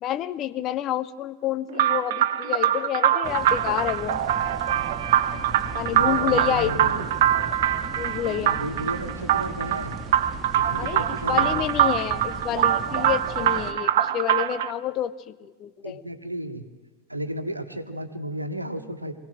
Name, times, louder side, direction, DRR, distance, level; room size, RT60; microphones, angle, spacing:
voice 1, 0.0-4.2 5.7-6.9 8.0-8.6 10.8-16.0, left 11 dB, 35° left, 14 dB, 0.7 m, -29 dB
sound 1, 1.7-14.7, right 11 dB, 55° right, 0.9 m, -23 dB
sound 2, 3.2-13.7, right 2 dB, 20° right, 1.9 m, -37 dB
voice 2, 5.9-7.0 8.3-10.0 10.5-11.6 15.8-16.6 17.1-19.1, right 1 dB, 85° right, 8 dB, 1.4 m, -33 dB
23.5 x 16.5 x 7.7 m, 1.3 s
figure-of-eight pair, 90°, 0 cm